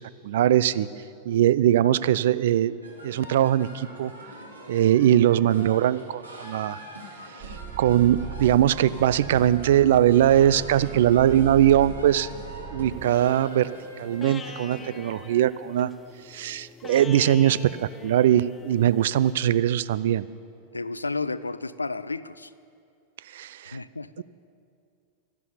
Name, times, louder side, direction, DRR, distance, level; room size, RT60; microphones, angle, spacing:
voice 1, 0.2-0.9 1.3-2.7 3.0-4.1 4.7-6.8 7.8-12.3 12.7-13.7 14.0-15.9 16.3-20.2 23.3-23.8 24.2-24.3, right 11 dB, 55° right, 17 dB, 0.4 m, -21 dB
sound 1, 2.8-15.2, equal, 85° right, 2.6 m, -43 dB
sound 2, 7.4-13.1, right 9 dB, 35° right, 0.8 m, -39 dB
sound 3, 12.9-19.3, left 4 dB, 20° left, 0.7 m, -44 dB
voice 2, 20.7-22.5 23.7-24.2, left 3 dB, 80° left, 17 dB, 0.4 m, -32 dB
12.5 x 11.0 x 7.2 m, 2.4 s
figure-of-eight pair, 90°, 0 cm